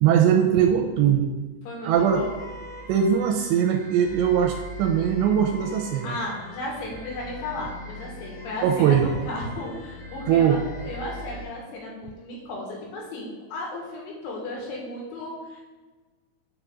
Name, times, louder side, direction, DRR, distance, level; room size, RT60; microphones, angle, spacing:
voice 1, 0.0-1.3 1.8-2.2 2.9-6.1 8.6-9.1 10.3-10.6, right 9 dB, 85° right, 5 dB, 2.6 m, -20 dB
voice 2, 1.6-2.3 6.0-15.6, left 1 dB, 75° left, -3 dB, 4.1 m, -35 dB
sound 1, 1.9-11.4, left 1 dB, 50° left, 2.4 m, -41 dB
8.0 x 4.0 x 6.1 m, 1.3 s
omnidirectional pair, 5.4 m